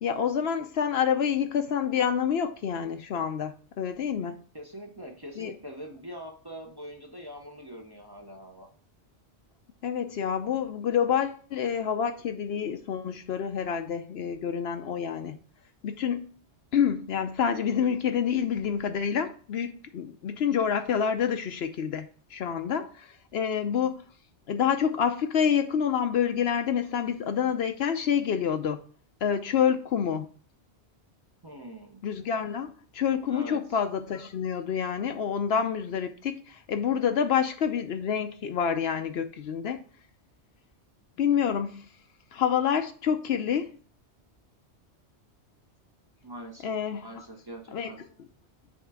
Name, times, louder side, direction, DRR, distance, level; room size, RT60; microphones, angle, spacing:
voice 1, 0.0-4.4 5.4-5.5 9.8-15.4 15.8-16.3 16.7-24.0 24.5-28.8 29.2-30.3 32.0-39.8 41.2-41.7 42.3-43.7 46.6-47.2 47.7-47.9, left 8 dB, 65° left, 0.8 m, -28 dB
voice 2, 4.5-8.7 31.4-32.0 33.3-33.8 46.2-46.7 47.0-48.0, equal, 25° right, 0.8 m, -43 dB
7.3 x 3.5 x 4.8 m
omnidirectional pair, 1.2 m